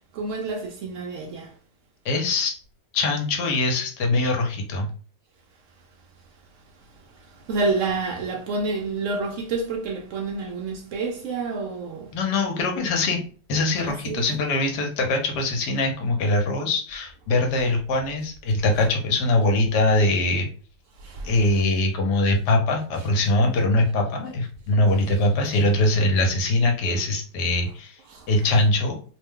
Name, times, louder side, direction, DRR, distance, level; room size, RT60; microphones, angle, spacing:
voice 1, 0.1-1.5 7.1-12.1 13.8-14.3 21.0-21.6 28.1-28.3, right 3 dB, 80° right, 0.6 m, -29 dB
voice 2, 2.0-2.5 2.9-4.9 12.1-13.2 13.5-20.5 21.2-28.0 28.3-29.0, left 2 dB, 80° left, 1.3 m, -22 dB
2.9 x 2.1 x 3.5 m
omnidirectional pair, 1.8 m